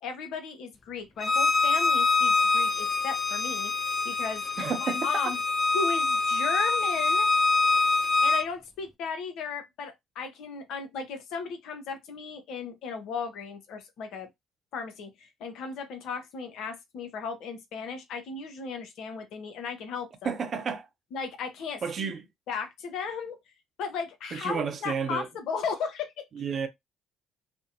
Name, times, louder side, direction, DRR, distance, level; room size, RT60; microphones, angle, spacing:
voice 1, 0.0-3.7 4.0-4.4 4.8-5.4 5.7-7.3 8.2-14.3 14.7-20.3 21.1-22.1 22.5-23.4 23.8-26.3, left 5 dB, 65° left, 0.6 m, -35 dB
Bowed string instrument, 1.2-8.4, left 3 dB, 20° left, 0.4 m, -25 dB
voice 2, 4.6-5.0 20.2-20.8 21.8-22.2 24.3-25.3 26.4-26.7, right 6 dB, 50° right, 0.6 m, -31 dB
2.5 x 2.1 x 2.6 m
hypercardioid pair, 50°, 0 cm